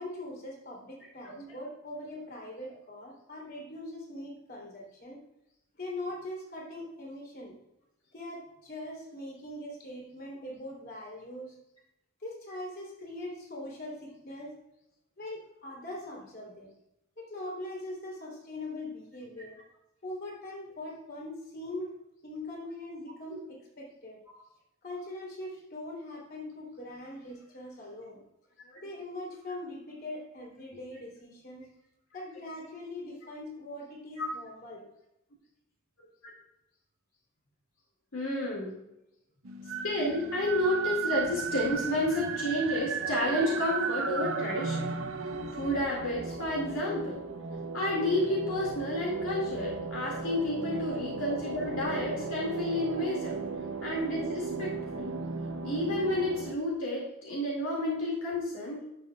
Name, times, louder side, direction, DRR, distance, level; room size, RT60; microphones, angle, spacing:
voice 1, 0.0-5.2 5.8-7.5 8.1-11.5 12.2-14.5 15.2-16.7 17.2-19.6 20.0-21.9 22.2-24.2 24.8-28.2 28.8-31.7 32.1-34.9, left 1 dB, 45° left, -2 dB, 3.2 m, -41 dB
voice 2, 38.1-38.8 39.8-45.0 45.6-47.2 47.7-53.4 53.8-55.2 55.6-58.9, left 1 dB, 75° left, -3 dB, 2.3 m, -31 dB
sound 1, 39.5-56.6, right 4 dB, 70° right, 0.7 m, -35 dB
12.0 x 7.0 x 2.4 m, 0.87 s
head